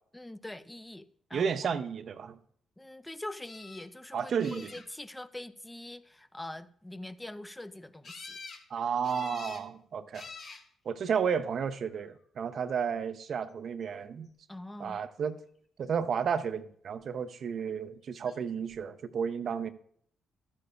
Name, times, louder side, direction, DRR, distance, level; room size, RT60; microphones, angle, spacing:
voice 1, 0.1-1.8 2.8-8.4 14.5-15.0, left 1 dB, 15° left, 0.5 m, -44 dB
voice 2, 1.3-2.4 4.1-4.7 8.7-10.2 10.9-14.3 14.8-15.4 15.8-19.7, right 7 dB, 60° right, 0.5 m, -32 dB
sound 1, 3.4-3.9 4.4-5.1 8.0-8.6 9.0-9.7 10.1-10.6 11.6-12.0 18.3-18.4 18.7-18.8, left 4 dB, 60° left, 1.2 m, -47 dB
12.5 x 9.7 x 2.3 m
supercardioid pair, 55°, 0 cm